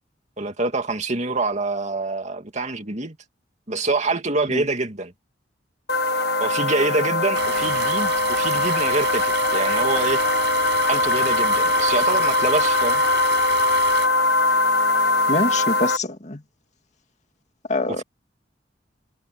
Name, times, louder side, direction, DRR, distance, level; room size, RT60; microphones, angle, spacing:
voice 1, 0.4-3.2 3.7-5.1 6.4-10.2 10.9-13.0, right 3 dB, 40° right, 2.6 m, -25 dB
sound 1, 5.9-16.0, left 2 dB, 60° left, 1.5 m, -21 dB
sound 2, 7.3-14.1, right 6 dB, 70° right, 7.2 m, -30 dB
voice 2, 15.3-16.4 17.7-18.0, left 2 dB, 40° left, 2.4 m, -25 dB
head